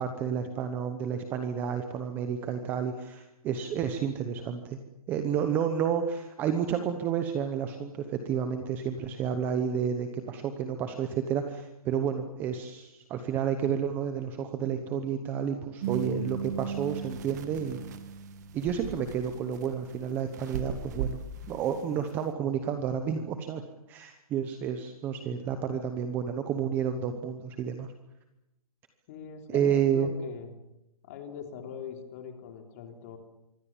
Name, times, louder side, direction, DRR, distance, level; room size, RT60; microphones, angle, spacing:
voice 1, 0.0-4.8 5.1-17.8 18.5-21.2 21.5-23.6 23.9-27.9 29.5-30.1, right 8 dB, 10° right, 8 dB, 1.0 m, -30 dB
sound 1, 15.8-21.7 22.1-22.2, right 7 dB, 30° right, 2.1 m, -37 dB
voice 2, 29.1-30.5 31.0-33.2, left 7 dB, 25° left, 5 dB, 3.5 m, -42 dB
25.5 x 23.5 x 7.3 m, 0.88 s
hypercardioid pair, 175°, 19 cm